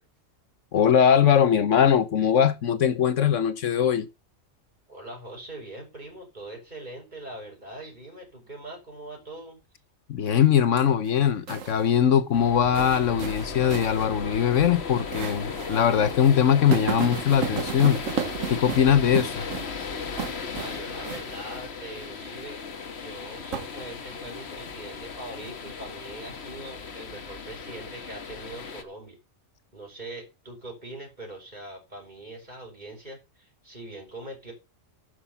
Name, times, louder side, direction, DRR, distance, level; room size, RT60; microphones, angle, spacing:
voice 1, 0.7-4.1 10.1-18.0 18.5-19.4, left 8 dB, 70° left, 1.2 m, -21 dB
voice 2, 4.9-9.6 20.6-22.6 23.0-29.2 29.7-34.5, right 1 dB, 35° right, 6.1 m, -42 dB
sound 1, 11.1-11.8 12.7-14.1 14.4-14.5 15.1-15.8 16.1-16.2 16.7-19.9 20.2-20.8 21.0-21.4 23.5-24.2, right 8 dB, 90° right, 1.4 m, -33 dB
sound 2, 12.3-28.8, left 5 dB, 55° left, 1.5 m, -36 dB
9.8 x 6.6 x 6.9 m
omnidirectional pair, 1.3 m